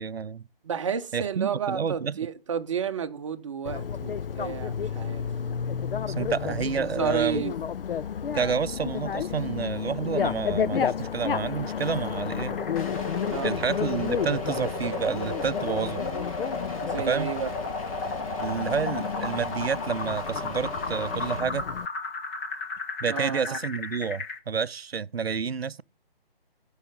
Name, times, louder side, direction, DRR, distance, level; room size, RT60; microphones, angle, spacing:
voice 1, 0.0-0.5 1.1-2.2 6.1-7.4 8.3-12.6 13.4-16.0 17.1-17.3 18.4-21.6 23.0-25.8, right 6 dB, 85° right, 0.6 m, -29 dB
voice 2, 0.6-5.2 6.8-7.5 13.3-13.6 16.8-17.5 23.1-23.6, right 7 dB, 30° right, 0.8 m, -31 dB
Bicycle, 3.7-21.9, left 7 dB, 65° left, 0.5 m, -32 dB
sound 1, 12.4-24.4, left 3 dB, 15° left, 0.7 m, -34 dB
sound 2, 12.8-21.4, left 2 dB, 35° left, 2.5 m, -39 dB
16.5 x 5.7 x 3.6 m
figure-of-eight pair, 150°, 30 cm